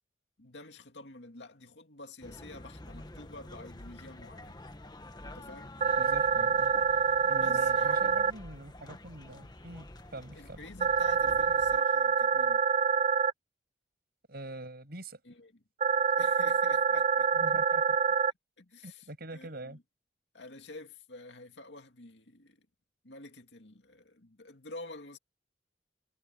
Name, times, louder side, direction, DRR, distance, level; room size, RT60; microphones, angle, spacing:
voice 1, 0.4-4.6 5.2-5.8 7.2-8.1 10.3-12.6 15.2-15.5 16.2-17.3 18.6-19.8 20.3-22.7 23.0-25.2, left 2 dB, 75° left, 2.4 m, -49 dB
sound 1, 2.2-11.8, left 1 dB, 25° left, 1.5 m, -49 dB
sound 2, 5.8-8.3 10.8-13.3 15.8-18.3, right 6 dB, 40° right, 0.7 m, -26 dB
voice 2, 6.0-6.7 7.3-10.6 14.3-15.2 17.3-18.0 18.8-19.8, right 1 dB, 60° right, 7.7 m, -44 dB
head